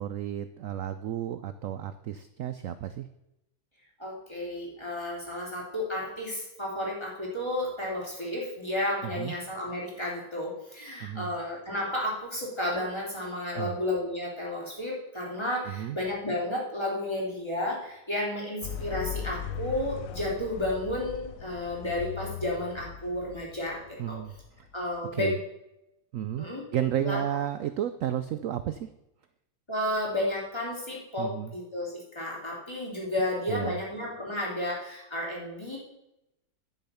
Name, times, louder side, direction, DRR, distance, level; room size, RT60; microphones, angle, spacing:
voice 1, 0.0-3.1 9.0-9.3 11.0-11.3 13.6-13.7 15.7-16.0 24.0-24.3 25.1-25.4 26.1-26.5 26.7-28.9 31.2-31.5 33.5-33.8, right 11 dB, 80° right, 11 dB, 0.7 m, -32 dB
voice 2, 4.0-23.8 24.1-24.2 24.7-25.4 26.4-26.6 27.0-27.2 29.7-35.8, left 1 dB, 15° left, -4 dB, 3.3 m, -32 dB
sound 1, 18.6-25.0, left 9 dB, 65° left, 0.9 m, -39 dB
11.0 x 7.0 x 5.6 m, 0.88 s
omnidirectional pair, 1.9 m